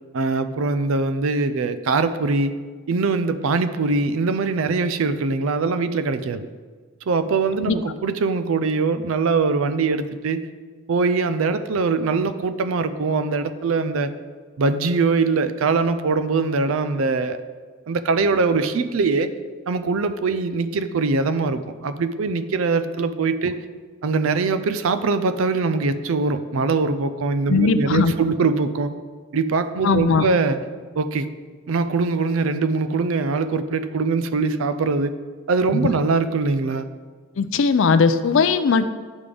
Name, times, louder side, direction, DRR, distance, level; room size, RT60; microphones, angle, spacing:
voice 1, 0.1-2.5 2.9-6.5 7.1-10.5 10.9-14.1 14.6-17.4 17.9-19.3 19.7-23.6 24.0-28.9 29.3-30.6 31.0-31.3 31.7-35.1 35.5-36.9, right 4 dB, 70° right, 11 dB, 0.4 m, -22 dB
voice 2, 27.5-28.1 29.8-30.3 35.7-35.9 37.4-39.0, left 5 dB, 60° left, 12 dB, 0.4 m, -19 dB
10.0 x 5.3 x 3.4 m, 1.5 s
head